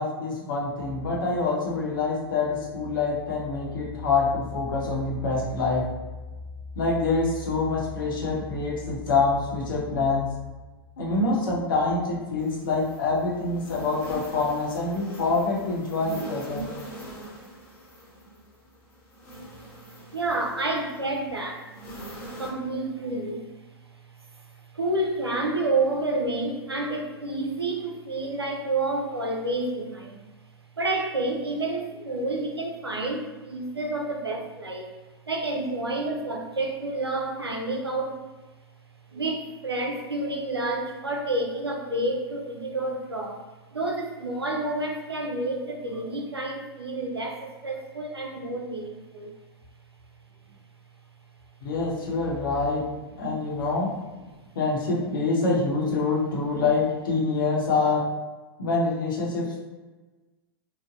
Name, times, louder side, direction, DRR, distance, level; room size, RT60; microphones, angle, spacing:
voice 1, 0.0-5.9 6.8-10.3 11.0-16.7 51.6-52.9 53.2-53.9 54.5-58.1 58.6-59.6, left 3 dB, 60° left, -3 dB, 0.8 m, -26 dB
sound 1, 12.4-22.5, right 1 dB, 20° left, 0.9 m, -42 dB
voice 2, 20.1-21.9 22.4-23.8 24.0-30.3 30.8-34.9 35.3-38.2 39.1-49.3 52.6-52.7 54.2-54.4 56.1-56.2, right 2 dB, 85° right, 1 dB, 0.5 m, -29 dB
3.2 x 2.0 x 2.5 m, 1.2 s
figure-of-eight pair, 100°, 13 cm